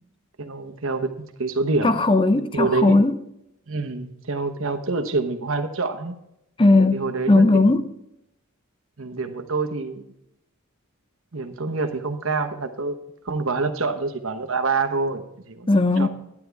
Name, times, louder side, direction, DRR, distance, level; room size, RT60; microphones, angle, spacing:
voice 1, 0.4-2.0 2.5-3.0 3.7-6.2 6.9-7.6 9.0-10.1 11.3-13.0 13.2-15.7 16.0-16.1, right 3 dB, 70° right, 1.0 m, -26 dB
voice 2, 1.8-3.2 6.6-7.9 15.7-16.1, left 2 dB, 25° left, 0.6 m, -18 dB
11.5 x 9.6 x 3.4 m
head